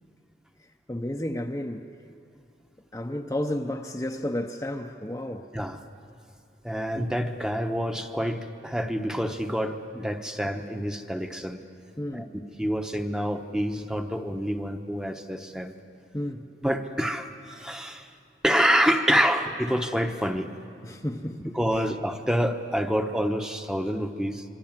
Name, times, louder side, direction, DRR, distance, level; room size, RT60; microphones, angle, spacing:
voice 1, 0.9-1.9 2.9-5.5 12.0-12.3 16.1-16.5 20.8-21.6, left 1 dB, 15° left, 0.7 m, -32 dB
voice 2, 6.6-11.6 12.1-12.3 12.6-15.7 16.6-18.1 18.4-20.5 21.5-24.4, equal, 5° right, 1.0 m, -27 dB
26.5 x 24.5 x 7.4 m
head